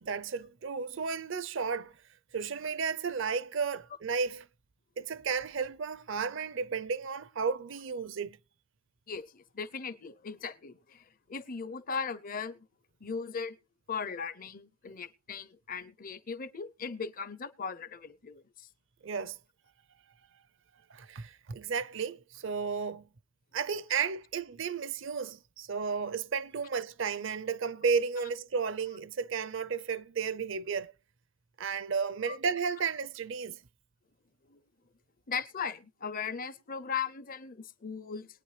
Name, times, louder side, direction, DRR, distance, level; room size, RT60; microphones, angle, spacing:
voice 1, 0.0-1.9 2.3-4.5 5.0-8.4 19.0-19.4 20.9-23.1 23.5-30.9 31.6-33.6, right 5 dB, 55° right, 0.5 m, -33 dB
voice 2, 9.1-11.0 11.3-12.6 13.0-13.5 13.9-18.7 32.3-32.4 34.5-34.6 35.3-38.3, left 6 dB, 40° left, 0.5 m, -38 dB
21.0 x 9.3 x 3.2 m
head